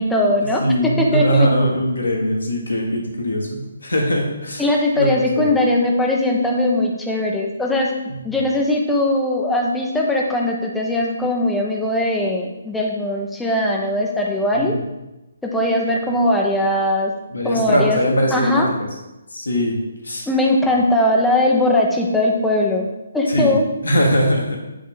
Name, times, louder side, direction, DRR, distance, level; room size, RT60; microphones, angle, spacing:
voice 1, 0.0-1.5 4.6-7.9 8.2-14.7 15.4-17.1 17.4-18.0 18.3-18.7 20.3-22.9 23.1-23.7, left 1 dB, 5° left, -1 dB, 0.7 m, -20 dB
voice 2, 0.6-4.6 5.0-5.4 14.5-14.8 17.3-18.9 19.3-19.8 20.0-20.2 23.3-24.6, equal, 70° left, 0 dB, 1.4 m, -21 dB
8.5 x 3.1 x 3.9 m, 0.99 s
figure-of-eight pair, 140°, 0 cm